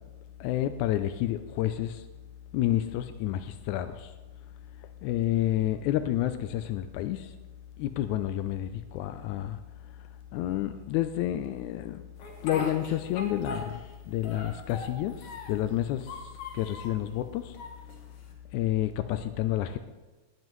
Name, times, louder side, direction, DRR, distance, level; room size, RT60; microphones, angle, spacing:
voice 1, 0.4-2.0 2.5-4.1 5.0-7.3 7.8-9.6 10.3-12.0 12.4-16.1 16.5-17.6 18.5-19.8, left 13 dB, 85° left, 9 dB, 1.7 m, -29 dB
Speech, 12.2-13.9 14.2-15.6 16.0-17.0 17.5-18.3, left 3 dB, 60° left, 2.8 m, -39 dB
18.0 x 9.4 x 3.1 m, 1.2 s
omnidirectional pair, 3.9 m